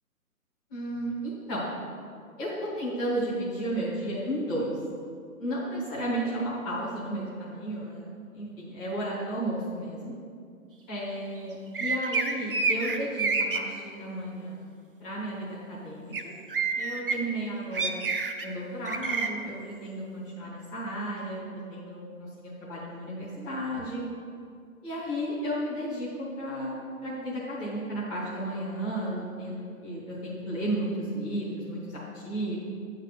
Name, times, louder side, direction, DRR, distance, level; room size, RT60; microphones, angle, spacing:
voice 1, 0.7-1.7 2.4-4.7 5.4-8.0 8.3-10.1 10.9-14.6 15.0-16.3 16.8-17.9 18.4-24.0 24.8-32.6, right 1 dB, 5° left, -10 dB, 0.8 m, -33 dB
sound 1, 11.7-13.6 16.1-16.2 16.5-17.1 17.7-18.4 18.8-19.3, right 4 dB, 40° right, 0.6 m, -27 dB
8.7 x 4.0 x 7.1 m, 2.3 s
hypercardioid pair, 170°, 44 cm